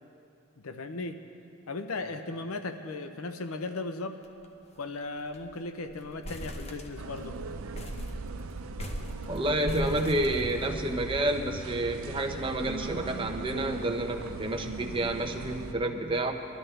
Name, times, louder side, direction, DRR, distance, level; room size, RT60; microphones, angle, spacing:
voice 1, 0.6-1.2 1.7-4.2 4.8-7.4, left 3 dB, 80° left, 8 dB, 0.7 m, -36 dB
sound 1, 4.2-4.5 4.7-4.8 5.2-5.5 5.9-7.3 7.7-11.0, equal, 30° left, 0.8 m, -39 dB
sound 2, 7.0-15.7, right 3 dB, 70° right, 0.6 m, -39 dB
voice 2, 9.3-16.3, right 1 dB, 25° right, 4 dB, 0.8 m, -29 dB
21.0 x 12.5 x 3.3 m, 2.7 s
head